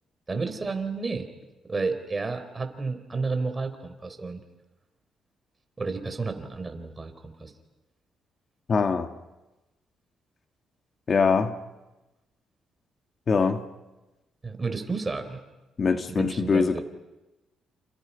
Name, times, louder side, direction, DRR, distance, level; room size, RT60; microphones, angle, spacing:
voice 1, 0.3-1.3 1.7-4.4 5.8-7.5 14.4-15.4 16.1-16.8, right 4 dB, 25° right, 7 dB, 4.0 m, -31 dB
voice 2, 8.7-9.1 11.1-11.5 13.3-13.6 15.8-16.8, left 5 dB, 45° left, 7 dB, 1.6 m, -23 dB
29.0 x 28.5 x 5.7 m, 1.1 s
cardioid pair, 90°, 0 cm